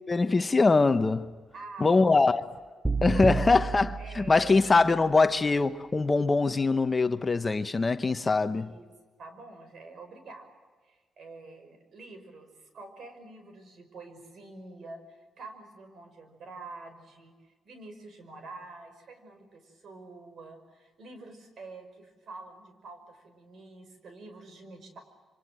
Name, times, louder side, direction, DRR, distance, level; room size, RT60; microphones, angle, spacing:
voice 1, 0.1-1.3 1.8-2.4 3.0-8.7, left 3 dB, 25° left, 0.9 m, -23 dB
voice 2, 1.5-2.4 3.1-3.4 4.0-5.1 8.5-8.9 9.2-10.5 10.8-25.0, right 3 dB, 60° right, 5.6 m, -47 dB
sound 1, 2.8-5.0, right 3 dB, 10° right, 0.7 m, -31 dB
27.0 x 25.0 x 7.6 m
cardioid pair, 95°, 0 cm